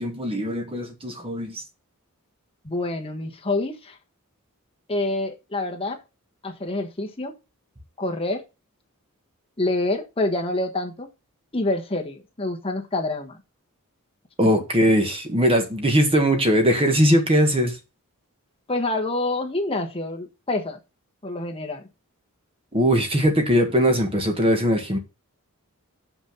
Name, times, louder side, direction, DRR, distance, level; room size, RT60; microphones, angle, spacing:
voice 1, 0.0-1.6 14.4-17.8 22.7-25.0, equal, 25° right, 1.5 m, -20 dB
voice 2, 2.6-4.0 4.9-6.0 6.4-7.3 8.0-8.4 9.6-11.1 11.5-13.4 18.7-20.8 21.2-21.8, left 2 dB, 25° left, 1.3 m, -27 dB
7.0 x 6.1 x 5.6 m
head